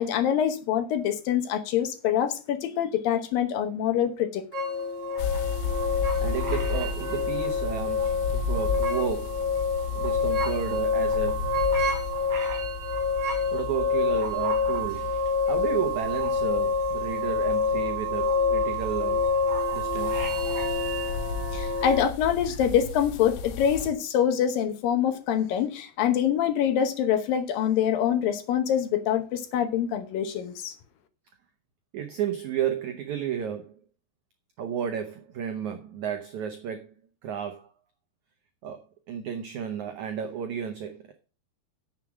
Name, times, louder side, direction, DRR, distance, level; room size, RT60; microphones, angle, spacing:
voice 1, 0.0-4.5 21.5-30.8, left 9 dB, 70° left, 2.4 m, -25 dB
sound 1, 4.5-22.1, left 3 dB, 40° right, 4.2 m, -27 dB
sound 2, 5.2-23.9, left 5 dB, 85° left, 3.3 m, -34 dB
voice 2, 6.2-9.4 9.9-11.7 13.5-15.2 15.5-19.2 19.7-20.3 31.9-33.8 34.6-36.9 37.2-37.7 38.6-41.0, right 8 dB, 75° right, 1.7 m, -32 dB
10.0 x 7.3 x 6.1 m
omnidirectional pair, 4.8 m